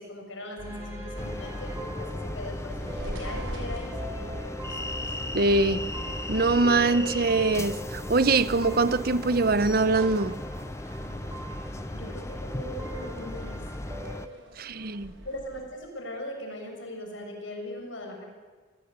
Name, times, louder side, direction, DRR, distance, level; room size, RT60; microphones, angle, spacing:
voice 1, 0.0-4.9 11.9-13.6 15.2-18.2, left 1 dB, 80° left, 6.6 m, -40 dB
sound 1, 0.6-14.2, equal, 15° right, 7.4 m, -41 dB
sound 2, 1.2-14.3, left 1 dB, 15° left, 0.6 m, -36 dB
sound 3, 2.1-15.6, equal, 80° right, 5.1 m, -46 dB
voice 2, 5.3-5.8 6.3-10.3 14.6-15.1, right 3 dB, 50° right, 0.9 m, -23 dB
27.5 x 19.0 x 8.2 m
head